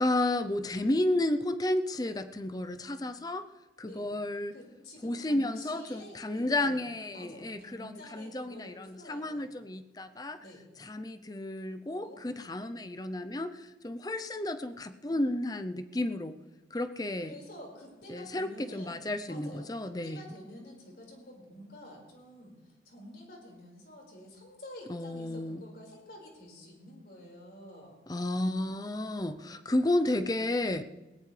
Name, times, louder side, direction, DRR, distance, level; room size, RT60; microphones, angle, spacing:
voice 1, 0.0-3.5 3.8-4.5 5.0-10.4 10.8-16.4 16.7-17.3 18.1-20.2 24.9-25.6 28.1-30.8, left 1 dB, 20° left, 10 dB, 0.6 m, -32 dB
voice 2, 4.5-6.8 7.1-9.5 10.4-10.7 12.0-12.2 17.2-28.0, left 1 dB, 65° left, -1 dB, 4.9 m, -49 dB
20.5 x 17.5 x 3.3 m, 1.1 s
head